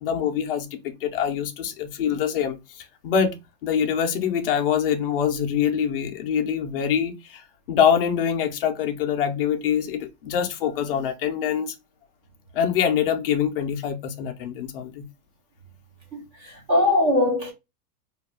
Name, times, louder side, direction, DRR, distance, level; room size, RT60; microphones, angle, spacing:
voice 1, 0.0-2.8 3.0-11.7 12.5-15.0, left 8 dB, 40° left, 0.4 m, -24 dB
voice 2, 16.1-17.5, left 2 dB, 20° right, 0.4 m, -21 dB
2.4 x 2.3 x 3.4 m
supercardioid pair, 160°, 48 cm